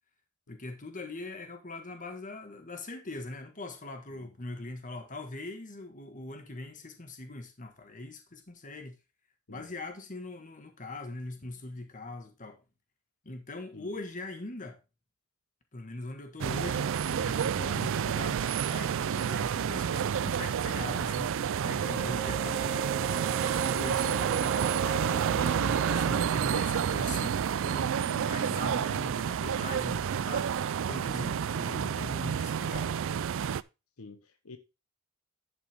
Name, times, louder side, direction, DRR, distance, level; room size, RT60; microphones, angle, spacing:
voice 1, 0.5-9.0 9.5-12.6 13.2-14.8 15.7-21.4 21.6-22.9 23.4-30.5 30.9-33.0, left 2 dB, 40° left, 1.6 m, -41 dB
sound 1, 16.4-33.6, right 8 dB, 65° right, 0.4 m, -29 dB
Wind instrument woodwind instrument, 21.8-26.3, right 2 dB, 10° right, 0.7 m, -41 dB
voice 2, 34.0-34.6, left 3 dB, 85° left, 1.1 m, -50 dB
10.5 x 6.0 x 3.5 m
head